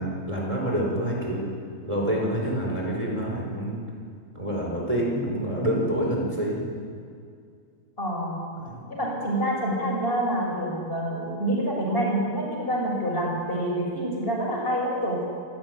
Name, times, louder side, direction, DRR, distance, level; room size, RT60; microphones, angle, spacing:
voice 1, 0.0-1.4 1.8-3.8 4.3-6.6 8.7-8.8, right 1 dB, 20° right, -2 dB, 5.0 m, -27 dB
voice 2, 8.0-8.4 8.9-15.2, right 1 dB, 35° left, -2 dB, 6.4 m, -27 dB
27.5 x 14.0 x 9.5 m, 2.3 s
omnidirectional pair, 1.7 m